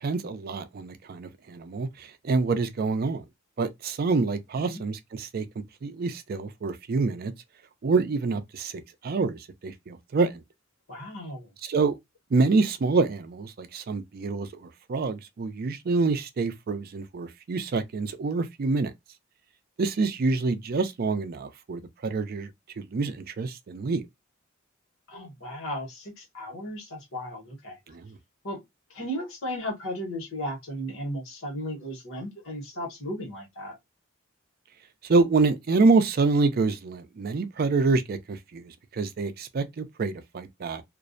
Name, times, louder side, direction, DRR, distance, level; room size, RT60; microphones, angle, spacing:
voice 1, 0.0-3.2 3.6-5.4 5.8-7.3 7.8-10.4 11.7-12.0 12.3-18.9 19.8-22.5 22.8-24.0 27.9-28.1 35.0-40.8, right 3 dB, 50° right, 0.4 m, -26 dB
voice 2, 10.9-11.5 25.1-27.8 28.4-28.6 28.9-33.8, equal, 80° left, 1.1 m, -35 dB
2.5 x 2.0 x 2.5 m
head